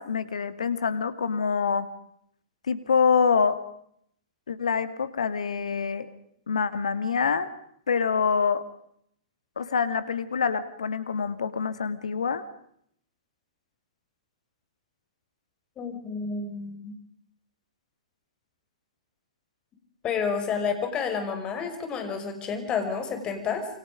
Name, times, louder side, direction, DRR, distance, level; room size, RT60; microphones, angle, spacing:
voice 1, 0.0-1.9 2.7-3.6 4.5-6.1 6.5-7.5 7.9-8.6 9.6-12.4, left 6 dB, 70° left, 12 dB, 2.3 m, -25 dB
voice 2, 15.8-17.0 20.0-23.7, left 6 dB, 25° left, 6 dB, 5.9 m, -30 dB
28.5 x 25.0 x 5.2 m, 0.70 s
figure-of-eight pair, 110°, 4 cm